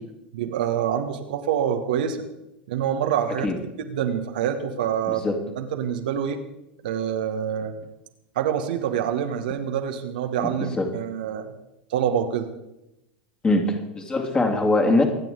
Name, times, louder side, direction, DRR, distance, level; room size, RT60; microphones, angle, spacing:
voice 1, 0.3-2.2 2.7-3.5 3.8-5.3 5.6-6.4 6.8-7.7 8.3-11.5 11.9-12.5, right 9 dB, 60° right, 5 dB, 1.4 m, -26 dB
voice 2, 13.4-15.1, left 2 dB, 20° left, 3 dB, 2.5 m, -22 dB
25.5 x 9.1 x 3.9 m, 0.91 s
figure-of-eight pair, 85°, 5 cm